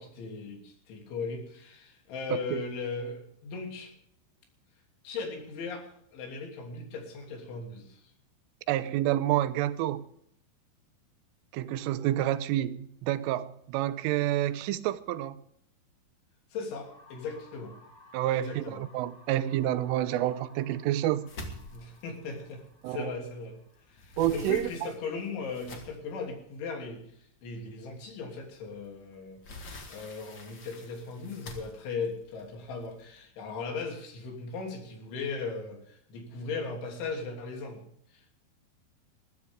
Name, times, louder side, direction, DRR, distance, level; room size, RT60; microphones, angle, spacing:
voice 1, 0.0-3.9 5.1-8.1 16.5-17.8 18.3-18.8 21.7-23.6 23.9-37.8 38.1-38.4, left 4 dB, 70° left, 2 dB, 5.3 m, -38 dB
voice 2, 2.3-2.7 8.7-10.1 11.5-15.4 18.1-21.3 22.8-23.1 24.2-24.9, right 13 dB, 85° right, 14 dB, 3.3 m, -29 dB
sound 1, 16.8-24.7, left 3 dB, 10° left, 6.0 m, -58 dB
sound 2, 21.3-23.4 23.8-26.2 26.8-26.9 27.4-27.5 28.9-33.2, left 1 dB, 55° left, 1.2 m, -46 dB
20.5 x 14.5 x 3.6 m, 0.68 s
omnidirectional pair, 5.6 m